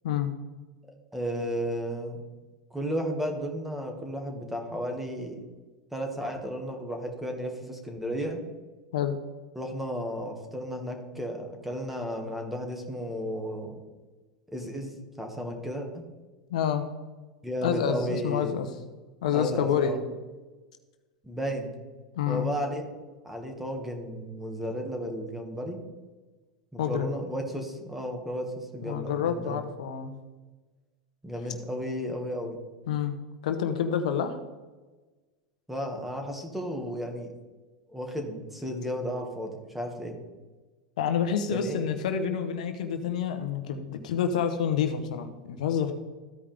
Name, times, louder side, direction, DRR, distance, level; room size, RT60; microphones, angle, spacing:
voice 1, 1.1-2.2 2.7-5.4 5.9-8.4 9.6-13.8 14.5-16.0 17.4-18.6 19.3-20.0 21.2-21.7 22.3-22.8 23.2-25.8 26.7-29.7 31.2-32.6 35.7-37.3 37.9-40.2 41.5-41.8, equal, 5° right, 3 dB, 1.9 m, -33 dB
voice 2, 16.5-16.8 17.6-18.7 19.2-20.0 22.1-22.5 26.8-27.2 28.8-30.1 32.9-33.1 33.4-34.4 41.0-45.9, left 8 dB, 80° left, 7 dB, 1.1 m, -28 dB
14.5 x 5.1 x 3.5 m, 1.3 s
hypercardioid pair, 115°, 4 cm